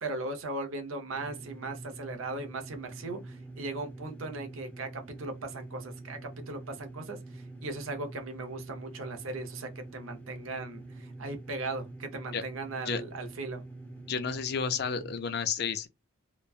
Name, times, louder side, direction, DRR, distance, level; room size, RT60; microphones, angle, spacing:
voice 1, 0.0-13.6, right 2 dB, 85° right, 0.8 m, -38 dB
sound 1, 1.1-15.2, right 2 dB, 5° left, 0.7 m, -46 dB
voice 2, 14.1-15.9, left 6 dB, 50° left, 0.5 m, -31 dB
3.0 x 2.2 x 2.4 m
head